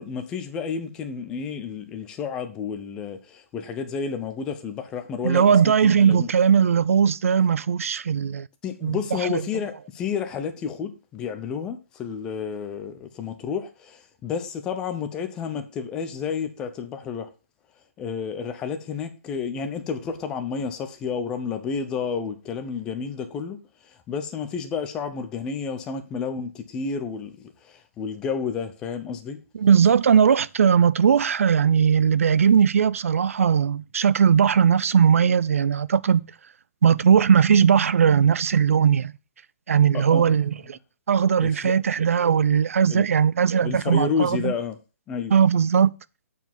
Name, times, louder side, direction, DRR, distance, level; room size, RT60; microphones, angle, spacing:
voice 1, 0.0-6.3 8.6-17.3 18.0-27.4 27.6-29.4 39.9-40.4 41.4-41.7 42.8-43.1 43.6-44.8 45.1-45.3, left 6 dB, 10° left, 0.5 m, -31 dB
voice 2, 5.2-8.5 8.8-9.0 9.3-9.4 29.5-36.2 36.8-39.1 39.7-40.8 41.1-44.5 45.3-45.9, right 7 dB, 65° right, 0.4 m, -19 dB
7.9 x 4.8 x 7.1 m
hypercardioid pair, 175°, 8 cm